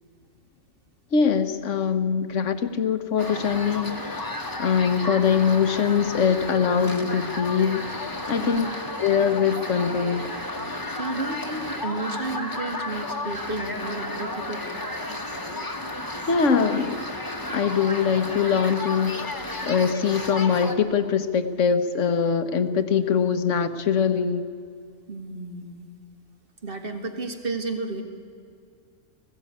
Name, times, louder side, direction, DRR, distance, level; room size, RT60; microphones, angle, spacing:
voice 1, 1.1-4.3 4.6-7.8 8.3-8.6 9.0-10.3 16.3-17.0 17.4-24.4, left 6 dB, 65° left, 10 dB, 1.4 m, -23 dB
sound 1, 3.2-20.8, left 1 dB, 15° left, 1.4 m, -33 dB
voice 2, 11.0-14.6 25.1-25.9 26.6-28.0, right 3 dB, 40° right, 5 dB, 2.2 m, -32 dB
20.0 x 15.0 x 9.5 m, 2.3 s
omnidirectional pair, 1.4 m